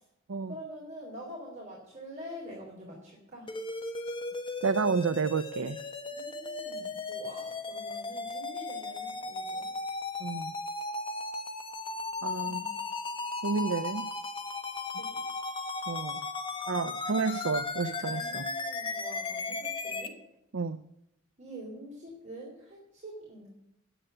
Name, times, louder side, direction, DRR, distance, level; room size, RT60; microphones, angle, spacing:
voice 1, 0.5-3.5 6.1-9.7 12.4-12.8 15.0-15.1 18.0-20.1 21.4-23.5, equal, 35° right, -4 dB, 3.9 m, -46 dB
sound 1, 3.5-20.1, left 3 dB, 25° left, 1.2 m, -36 dB
voice 2, 4.6-5.8 10.2-10.5 12.2-12.6 13.4-14.1 15.9-16.2 16.7-18.5 20.5-20.8, right 4 dB, 80° right, 10 dB, 0.6 m, -30 dB
10.0 x 8.9 x 10.0 m, 0.83 s
head